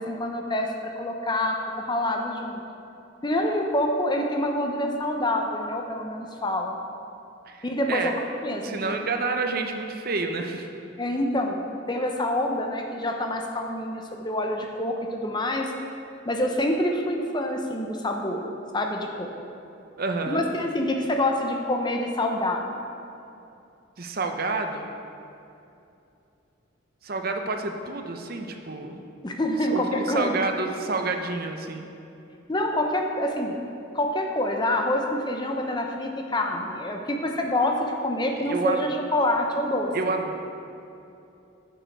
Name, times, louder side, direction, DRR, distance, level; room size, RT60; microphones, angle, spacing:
voice 1, 0.0-2.6 3.2-6.8 7.6-8.1 8.4-9.0 11.0-15.7 16.2-18.4 18.7-19.3 20.3-22.8 29.2-30.3 32.5-33.6 33.9-39.9, left 1 dB, 20° left, 2 dB, 0.7 m, -26 dB
voice 2, 7.5-8.1 8.6-10.7 20.0-20.4 24.0-24.9 27.0-29.0 29.7-29.8 30.1-31.9 38.4-38.8 39.9-40.4, right 3 dB, 45° right, 5 dB, 0.7 m, -29 dB
10.5 x 6.9 x 4.6 m, 2.7 s
head